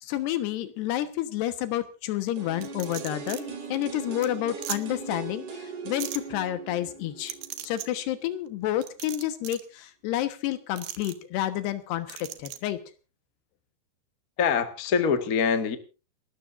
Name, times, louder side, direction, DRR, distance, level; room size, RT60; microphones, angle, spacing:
voice 1, 0.0-7.3 7.6-12.8, left 13 dB, 85° left, 11 dB, 3.4 m, -30 dB
sound 1, 2.4-8.3 8.6-8.7, right 4 dB, 55° right, 3.6 m, -40 dB
sound 2, 2.6-3.4 3.8-3.9 4.2-4.3 4.6-4.8 6.0-6.2 7.3-7.9 8.8-9.7 10.8-11.1 12.1-12.6, right 13 dB, 75° right, 3.1 m, -37 dB
voice 2, 14.4-15.8, left 6 dB, 50° left, 8 dB, 1.0 m, -24 dB
28.5 x 13.0 x 2.6 m, 0.32 s
omnidirectional pair, 4.6 m